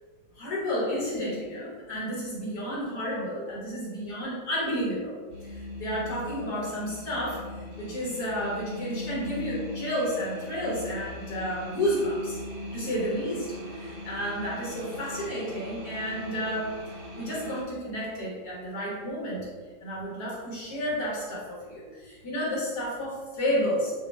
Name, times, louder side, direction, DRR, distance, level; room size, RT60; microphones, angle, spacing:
voice 1, 0.4-12.4 12.7-16.7 17.1-19.5 19.8-23.9, equal, 55° left, -6 dB, 1.7 m, -31 dB
sound 1, 5.3-17.6, left 1 dB, 60° right, 0.8 m, -39 dB
6.6 x 2.2 x 3.2 m, 1.5 s
omnidirectional pair, 2.1 m